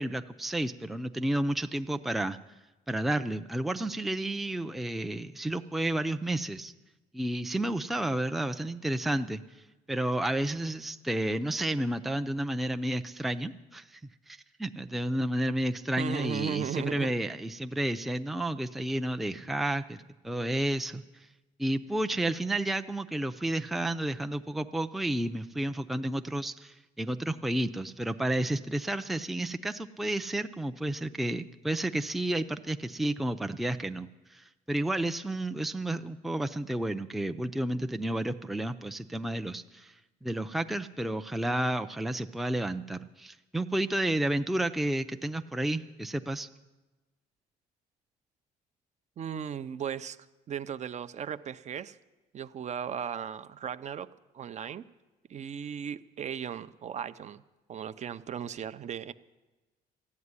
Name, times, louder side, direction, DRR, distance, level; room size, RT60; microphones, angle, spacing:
voice 1, 0.0-2.4 2.9-6.7 7.1-9.4 9.9-14.0 14.3-20.0 20.2-21.0 21.6-39.9 40.2-46.5, right 1 dB, ahead, 7 dB, 0.5 m, -31 dB
voice 2, 16.0-17.1 49.2-50.2 50.5-52.0 52.3-54.1 54.3-54.8 55.3-57.4 57.7-59.1, right 8 dB, 45° right, 13 dB, 0.6 m, -36 dB
14.0 x 8.5 x 9.7 m, 1.1 s
cardioid pair, 110°, 17 cm